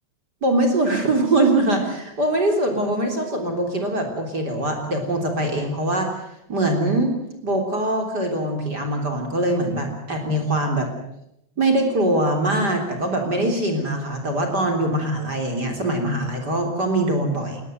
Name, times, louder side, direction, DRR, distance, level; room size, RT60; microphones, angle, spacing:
voice 1, 0.4-6.1 6.5-7.1 7.4-10.9 11.6-17.6, right 1 dB, 25° right, 3 dB, 3.2 m, -22 dB
20.5 x 18.5 x 9.2 m, 0.81 s
omnidirectional pair, 5.7 m